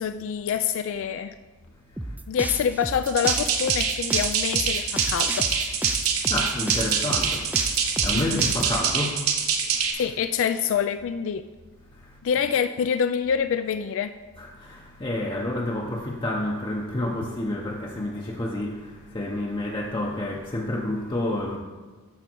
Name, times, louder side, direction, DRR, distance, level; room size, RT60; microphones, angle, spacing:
voice 1, 0.0-1.3 2.3-5.5 8.1-8.4 9.9-11.5 12.2-14.1, left 7 dB, 65° left, 9 dB, 0.3 m, -26 dB
sound 1, 2.0-8.8, right 1 dB, 5° right, 0.4 m, -33 dB
sound 2, 3.1-9.9, right 6 dB, 75° right, 1.1 m, -25 dB
voice 2, 6.0-10.0 11.9-12.2 14.4-21.6, left 1 dB, 25° left, -1 dB, 0.7 m, -30 dB
13.0 x 5.0 x 4.5 m, 1.3 s
head